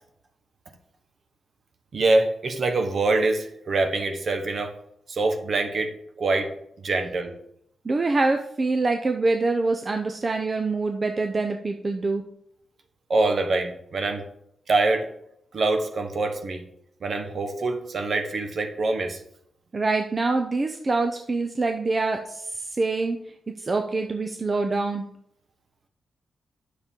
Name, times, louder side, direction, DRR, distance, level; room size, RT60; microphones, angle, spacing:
voice 1, 1.9-4.7 5.1-6.5 6.8-7.4 13.1-14.2 14.7-15.1 15.5-16.6 17.0-19.2, right 3 dB, 55° right, 6 dB, 1.2 m, -24 dB
voice 2, 7.8-12.2 19.7-23.2 23.5-25.1, right 3 dB, 35° right, 5 dB, 0.6 m, -25 dB
9.7 x 6.6 x 3.8 m, 0.73 s
cardioid pair, 105°, 0 cm